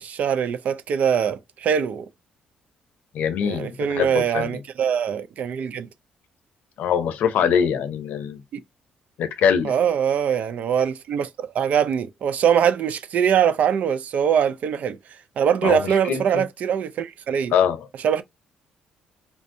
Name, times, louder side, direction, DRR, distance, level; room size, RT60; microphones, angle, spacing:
voice 1, 0.0-2.1 3.4-5.9 8.5-8.6 9.6-15.0 15.4-17.5 18.0-18.2, right 8 dB, 60° right, 0.4 m, -22 dB
voice 2, 3.1-4.6 6.8-8.4 9.2-9.7 15.6-16.4 17.5-17.9, left 7 dB, 75° left, 0.6 m, -23 dB
3.4 x 2.6 x 2.6 m
cardioid pair, 85°, 3 cm